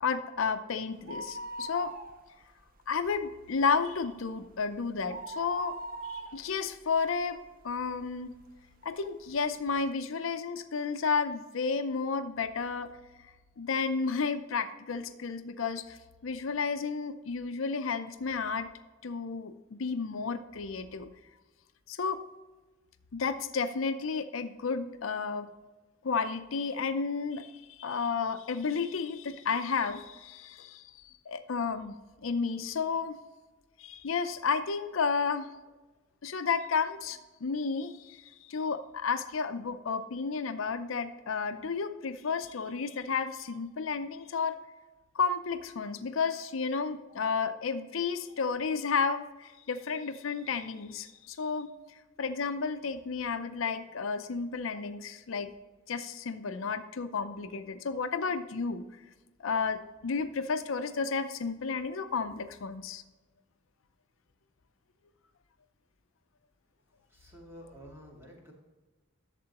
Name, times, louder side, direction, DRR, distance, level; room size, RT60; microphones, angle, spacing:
voice 1, 0.0-1.9 2.9-5.8 6.0-7.4 7.6-8.3 8.8-12.9 13.6-16.0 16.2-18.7 19.0-21.1 21.9-22.2 23.1-25.5 26.0-31.9 32.2-33.2 33.8-35.5 36.2-44.5 45.1-51.7 52.2-55.5 55.9-58.8 59.4-63.0, left 5 dB, 75° left, 10 dB, 0.6 m, -32 dB
sound 1, 0.9-2.6 2.9-3.0 3.5-7.9 8.4-8.5 9.3-9.4 9.6-9.7, right 2 dB, 45° right, 0.6 m, -42 dB
voice 2, 67.1-68.5, equal, 15° right, -2 dB, 2.1 m, -50 dB
11.5 x 7.5 x 2.9 m, 1.2 s
head